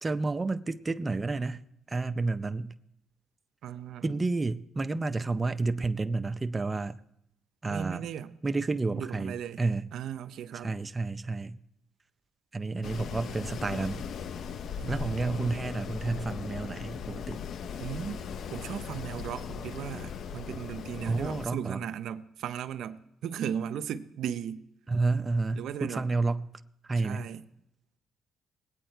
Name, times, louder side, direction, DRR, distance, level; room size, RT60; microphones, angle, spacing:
voice 1, 0.0-1.6 1.9-2.8 4.0-7.0 7.6-8.1 8.4-9.9 10.6-11.6 12.5-14.1 14.9-17.4 21.1-21.8 24.9-26.5 26.8-27.3, right 3 dB, 25° right, 0.5 m, -30 dB
voice 2, 3.6-4.2 7.7-8.3 8.9-9.6 9.9-10.7 14.8-15.5 17.8-24.6 25.5-26.0 27.0-27.4, right 9 dB, 75° right, 0.6 m, -37 dB
Wind, 12.8-21.5, left 7 dB, 65° left, 0.5 m, -38 dB
19.5 x 8.7 x 4.5 m
cardioid pair, 90°, 0 cm